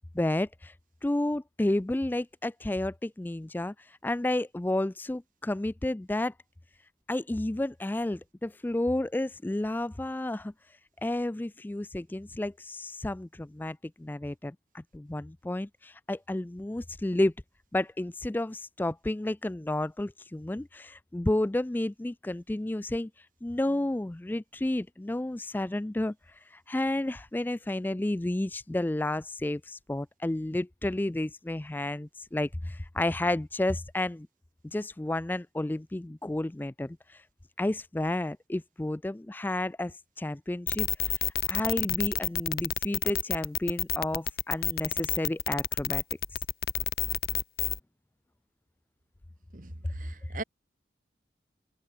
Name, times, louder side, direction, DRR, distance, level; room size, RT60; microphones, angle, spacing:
voice 1, 0.1-0.7 1.0-6.3 7.1-10.5 11.0-17.3 17.7-34.3 34.6-37.2 37.6-46.0 46.3-46.4 50.2-50.3, left 1 dB, 10° left, 0.3 m, -31 dB
sound 1, 40.7-47.8, left 11 dB, 60° left, 1.1 m, -29 dB
voice 2, 49.5-50.4, right 2 dB, 50° right, 2.3 m, -39 dB
head